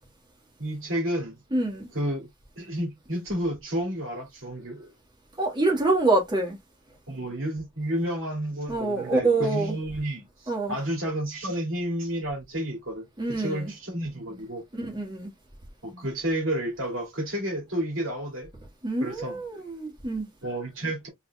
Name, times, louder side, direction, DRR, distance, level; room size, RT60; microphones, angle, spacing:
voice 1, 0.6-1.4 1.9-2.3 2.6-4.9 7.1-14.6 15.8-18.5 19.0-19.6 20.4-21.1, right 1 dB, 80° right, 2.5 m, -31 dB
voice 2, 1.5-1.9 5.4-6.6 8.7-9.7 10.5-10.7 13.2-13.7 14.7-15.3 18.8-20.3, right 2 dB, 25° right, 1.6 m, -26 dB
4.2 x 4.0 x 2.3 m
head